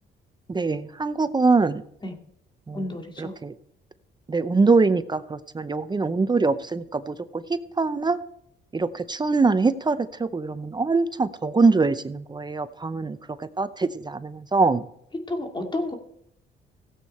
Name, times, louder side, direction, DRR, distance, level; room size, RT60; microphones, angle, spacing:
voice 1, 0.5-1.8 2.7-2.8 3.2-3.5 4.3-8.2 8.7-13.2 13.6-14.8, right 4 dB, 20° right, 13 dB, 0.6 m, -23 dB
voice 2, 2.7-3.3 15.3-15.9, left 1 dB, 25° left, 3 dB, 2.3 m, -30 dB
16.5 x 8.2 x 4.4 m, 0.72 s
cardioid pair, 90°, 20 cm